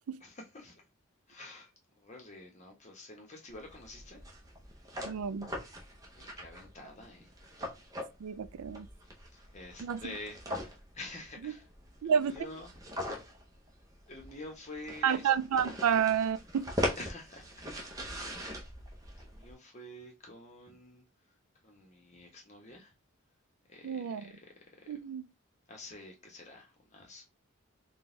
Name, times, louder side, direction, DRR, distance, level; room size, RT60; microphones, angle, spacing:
voice 1, 0.2-0.8 1.3-4.2 5.9-7.3 9.3-11.6 12.0-12.7 14.1-15.6 17.0-17.7 18.2-18.6 19.1-21.0 21.6-22.9 23.7-24.3 24.8-24.9 25.7-27.2, left 2 dB, 30° left, 1.0 m, -48 dB
sound 1, 3.5-19.5, left 1 dB, 15° right, 0.7 m, -41 dB
voice 2, 5.0-5.5 8.2-8.9 9.8-10.0 11.4-11.5 12.0-12.3 15.0-16.7 23.8-24.3 24.9-25.3, right 8 dB, 85° right, 0.4 m, -30 dB
3.9 x 2.3 x 3.8 m
head